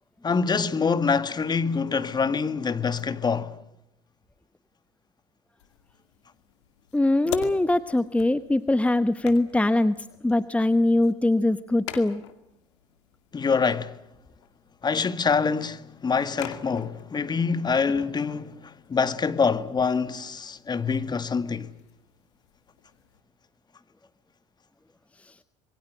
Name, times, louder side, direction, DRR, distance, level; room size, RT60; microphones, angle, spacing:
voice 1, 0.2-3.6 13.3-13.9 14.8-21.7, left 5 dB, 30° left, 1.9 m, -25 dB
sound 1, 5.6-23.2, left 11 dB, 80° left, 2.4 m, -45 dB
voice 2, 6.9-10.0 10.2-12.2 25.2-25.3, left 2 dB, 10° left, 1.0 m, -22 dB
27.0 x 22.0 x 7.8 m
hypercardioid pair, 70°, 15 cm